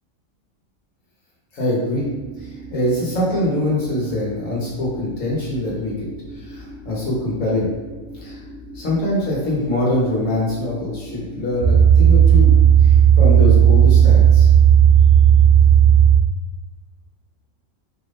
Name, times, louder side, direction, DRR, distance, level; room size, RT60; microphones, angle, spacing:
voice 1, 1.5-2.1 2.4-6.1 6.3-7.7 8.1-8.4 8.7-12.5 12.8-14.5, left 1 dB, 75° left, -5 dB, 1.7 m, -23 dB
sound 1, 2.1-16.1, right 9 dB, 60° right, 1.0 m, -14 dB
4.7 x 2.6 x 3.5 m, 1.3 s
omnidirectional pair, 1.4 m